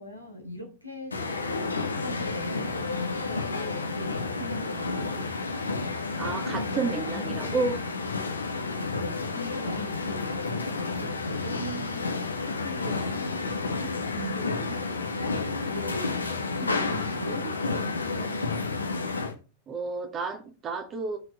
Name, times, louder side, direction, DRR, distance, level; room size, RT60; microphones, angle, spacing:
voice 1, 0.0-5.3 6.5-7.3 8.5-12.1 12.4-15.4 15.7-18.8, equal, 85° right, 3 dB, 3.0 m, -40 dB
sound 1, 1.1-19.3, left 3 dB, 80° left, 1.7 m, -31 dB
voice 2, 6.1-7.8 14.6-14.8 19.7-21.2, right 4 dB, 30° right, 4 dB, 2.0 m, -31 dB
16.0 x 6.2 x 3.2 m, 0.32 s
figure-of-eight pair, 90°, 0 cm